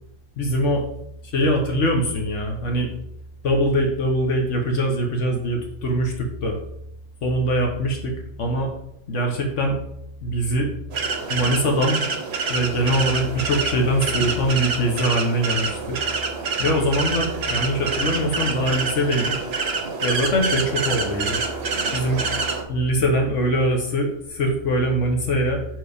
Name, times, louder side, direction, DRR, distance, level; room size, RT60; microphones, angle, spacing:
voice 1, 0.4-0.8 1.2-2.9 3.4-6.6 7.2-8.1 8.4-8.7 9.1-9.8 10.2-10.7 11.3-12.0 12.5-16.0 16.6-19.3 20.0-21.4 21.9-22.2 22.7-25.6, equal, 75° left, 2 dB, 1.4 m, -22 dB
sound 1, 10.9-22.6, right 4 dB, 60° right, 1.1 m, -27 dB
6.1 x 4.7 x 4.9 m, 0.76 s
omnidirectional pair, 1.3 m